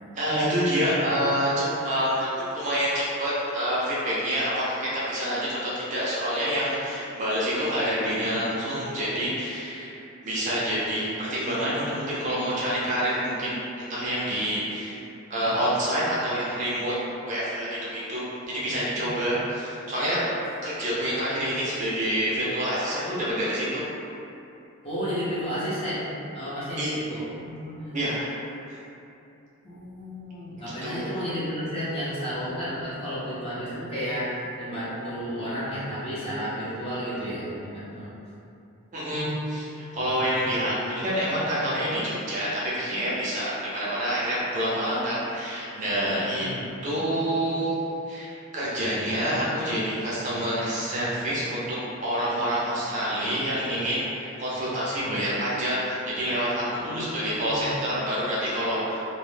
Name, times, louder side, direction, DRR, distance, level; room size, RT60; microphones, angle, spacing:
voice 1, 0.2-2.3 2.5-15.0 15.3-16.9 17.2-23.9 26.8-26.9 27.9-28.3 28.7-28.8 30.8-31.1 38.9-46.5 46.8-47.7 48.1-59.1, equal, 35° right, -8 dB, 0.4 m, -27 dB
voice 2, 18.5-19.2 24.8-28.0 29.6-38.2 46.2-46.8 56.7-57.7, equal, 25° left, -10 dB, 0.6 m, -32 dB
2.1 x 2.0 x 3.1 m, 2.7 s
head